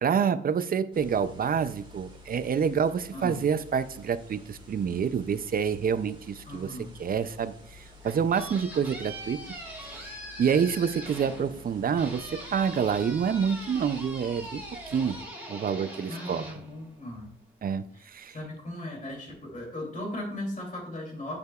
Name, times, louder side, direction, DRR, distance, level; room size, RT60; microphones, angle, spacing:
voice 1, 0.0-9.4 10.0-15.2 15.5-16.4 17.6-18.4, right 7 dB, 45° right, 14 dB, 0.4 m, -28 dB
sound 1, 0.9-15.2, left 2 dB, 25° right, 1.7 m, -51 dB
voice 2, 3.1-3.5 6.5-7.0 16.1-17.3 18.3-21.4, left 1 dB, 40° left, 0 dB, 2.7 m, -37 dB
sound 2, 7.8-17.5, right 1 dB, 5° right, 3.0 m, -42 dB
9.4 x 6.8 x 2.3 m, 0.65 s
wide cardioid pair, 120°, 21 cm